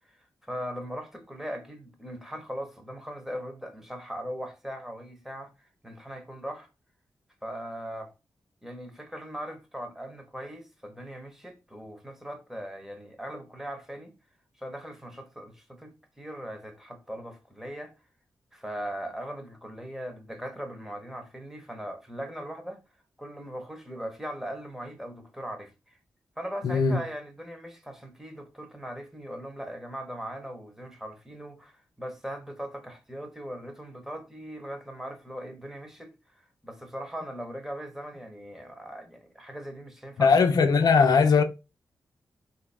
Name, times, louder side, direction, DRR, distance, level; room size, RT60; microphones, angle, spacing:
voice 1, 0.1-6.7 7.4-8.1 8.6-14.1 14.6-17.9 18.5-22.8 23.2-26.0 26.4-40.4, equal, 5° right, 1.1 m, -39 dB
voice 2, 26.6-27.0 40.2-41.4, left 5 dB, 70° left, 0.5 m, -20 dB
3.5 x 2.7 x 3.4 m
cardioid pair, 65°, 7 cm